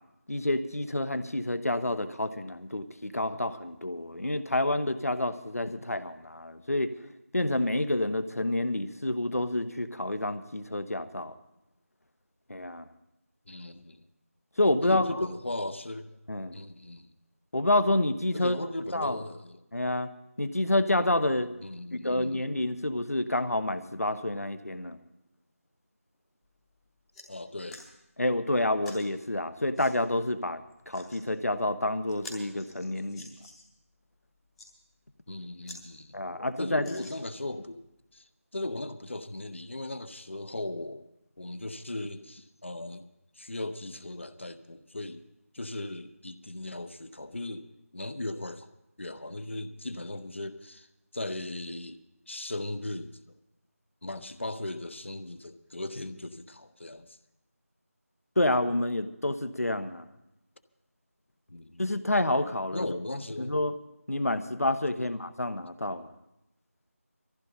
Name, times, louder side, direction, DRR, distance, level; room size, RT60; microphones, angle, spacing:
voice 1, 0.3-6.9 7.3-11.3 12.5-12.9 14.6-15.3 16.3-16.6 17.5-18.6 18.9-19.2 19.7-20.1 20.4-21.5 22.0-25.0 28.2-30.6 30.9-33.3 36.1-36.9 58.4-60.1 61.8-62.9 63.4-63.7 64.1-66.1, left 1 dB, 75° left, 10 dB, 1.2 m, -28 dB
voice 2, 13.5-14.0 14.8-16.2 16.5-17.1 18.3-19.6 21.6-22.5 27.3-27.8 35.3-37.8 38.1-41.1 41.4-43.1 43.4-45.2 45.5-47.7 47.9-48.7 49.0-50.9 51.1-52.0 52.3-53.4 54.0-57.2 61.5-61.9 62.7-63.6 65.0-65.1, left 2 dB, 50° left, 10 dB, 1.0 m, -38 dB
sound 1, 26.4-26.6 26.9-27.3 27.7-27.9 28.8-29.1 29.7-29.9 30.7-31.2 31.7-31.8 32.1-33.7 34.4-34.7 35.2-35.3 35.6-35.8 36.2-36.3 36.8-37.5 38.2-38.3, left 1 dB, ahead, 1.0 m, -48 dB
20.0 x 14.5 x 4.1 m, 0.88 s
figure-of-eight pair, 170°, 8 cm